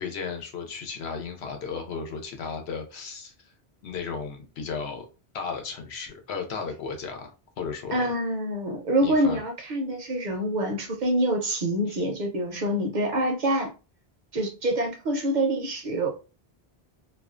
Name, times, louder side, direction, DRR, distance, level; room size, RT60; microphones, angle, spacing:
voice 1, 0.0-3.3 3.8-5.1 5.3-8.1 9.0-9.4 11.9-12.0, left 5 dB, 90° left, 0.9 m, -34 dB
voice 2, 7.9-13.7 14.3-16.1, right 1 dB, 55° right, 0.6 m, -26 dB
2.4 x 2.1 x 2.4 m
omnidirectional pair, 1.0 m